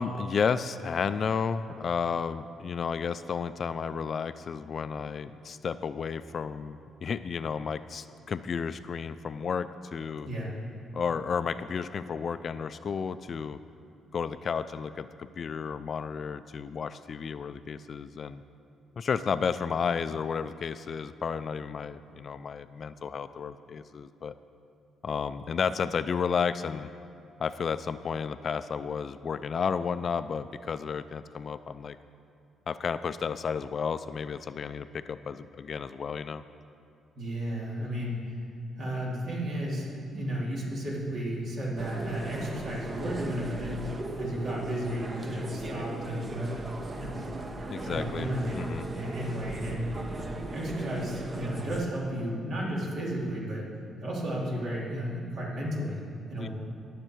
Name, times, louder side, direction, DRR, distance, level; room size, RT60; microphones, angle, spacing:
voice 1, 0.0-10.3 10.9-13.6 14.1-18.4 19.0-24.4 25.0-26.9 27.4-32.0 32.7-36.4 47.7-48.9 56.4-56.5, left 6 dB, 50° left, 13 dB, 0.3 m, -32 dB
voice 2, 37.1-38.4 38.8-43.8 44.2-46.7 46.9-47.1 47.8-48.6 48.9-49.9 50.5-53.7 54.0-56.0 56.3-56.5, equal, 65° right, -5 dB, 3.1 m, -33 dB
sound 1, 41.8-51.8, right 2 dB, 35° right, 0.9 m, -38 dB
18.0 x 6.6 x 4.6 m, 2.4 s
cardioid pair, 90°, 0 cm